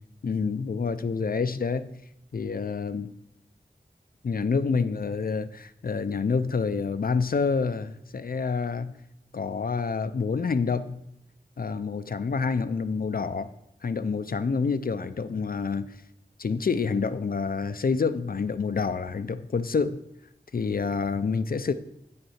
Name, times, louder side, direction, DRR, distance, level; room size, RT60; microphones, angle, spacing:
voice 1, 0.2-1.9 2.3-3.1 4.2-9.0 9.3-11.0 11.6-13.5 13.8-16.0 16.4-20.0 20.5-21.7, left 5 dB, 60° left, 11 dB, 0.5 m, -27 dB
8.1 x 5.4 x 5.7 m, 0.80 s
wide cardioid pair, 50°, 17 cm